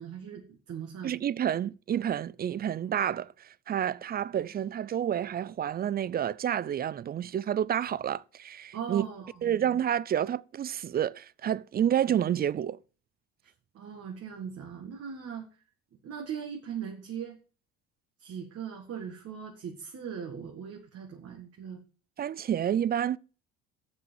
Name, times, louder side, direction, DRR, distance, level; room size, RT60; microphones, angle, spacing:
voice 1, 0.0-1.1 8.7-9.8 13.7-15.4 16.0-17.4 18.2-21.8, right 7 dB, 50° right, 1.9 m, -39 dB
voice 2, 1.0-9.0 9.4-12.8 22.2-23.2, right 10 dB, 30° right, 0.4 m, -29 dB
7.0 x 6.3 x 7.1 m
supercardioid pair, 75°, 32 cm